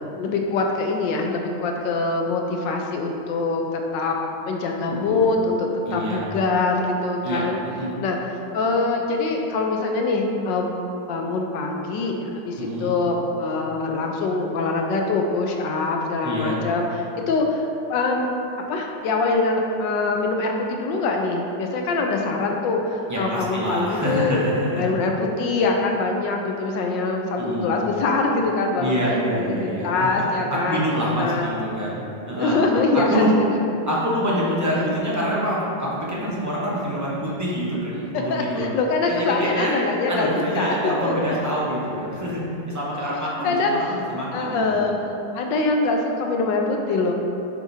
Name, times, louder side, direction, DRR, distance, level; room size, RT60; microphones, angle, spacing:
voice 1, 0.0-4.2 4.5-7.6 8.0-10.7 11.1-18.3 18.7-29.0 29.5-30.8 31.2-31.5 32.4-33.4 34.8-34.9 38.3-40.8 41.0-41.1 43.4-44.0 44.3-44.9 45.3-47.1, left 3 dB, 75° left, 2 dB, 1.2 m, -24 dB
voice 2, 4.9-5.2 5.9-6.2 7.2-7.9 12.6-12.9 16.2-16.5 23.1-24.9 27.4-27.7 28.8-29.9 30.2-30.3 30.6-32.0 32.3-32.6 32.9-33.3 33.9-38.7 39.1-39.8 40.1-42.4 42.7-44.8, equal, 25° right, -7 dB, 0.4 m, -26 dB
7.3 x 5.1 x 2.7 m, 2.7 s
omnidirectional pair, 2.1 m